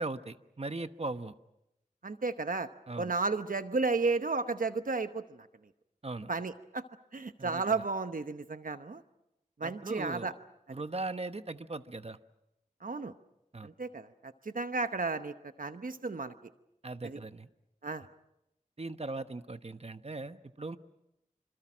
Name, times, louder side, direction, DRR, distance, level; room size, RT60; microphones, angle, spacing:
voice 1, 0.0-1.3 2.9-3.1 6.0-6.3 7.4-7.6 9.6-10.3 10.7-12.2 13.5-13.7 16.8-17.5 18.8-20.8, right 2 dB, 50° right, 10 dB, 1.1 m, -39 dB
voice 2, 2.0-2.7 3.0-5.5 6.3-6.8 7.1-9.0 9.6-10.3 10.7-10.8 12.8-13.1 13.6-16.3 17.0-17.2 17.8-18.0, right 3 dB, 85° right, 9 dB, 1.0 m, -33 dB
27.0 x 26.5 x 6.2 m, 0.85 s
wide cardioid pair, 50°, 14 cm